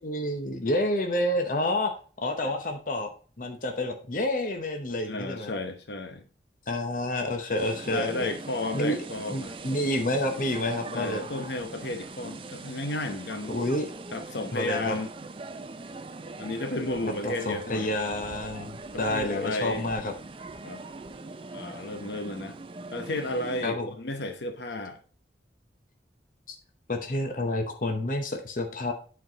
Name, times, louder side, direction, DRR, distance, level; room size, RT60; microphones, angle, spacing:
voice 1, 0.0-1.9 2.2-3.1 3.4-5.5 6.7-8.3 8.7-9.0 9.3-11.3 13.5-13.9 14.5-14.9 17.2-20.1 23.6-23.9 26.5-26.6 26.9-28.9, left 1 dB, 50° left, 0.8 m, -29 dB
voice 2, 5.0-6.3 7.9-9.5 10.8-13.5 14.1-15.1 16.4-17.9 18.9-19.8 20.6-20.8 21.5-22.6 22.9-25.0, left 2 dB, 75° left, 0.9 m, -33 dB
sound 1, 7.6-23.7, right 3 dB, 30° right, 0.4 m, -41 dB
8.6 x 4.6 x 3.9 m
head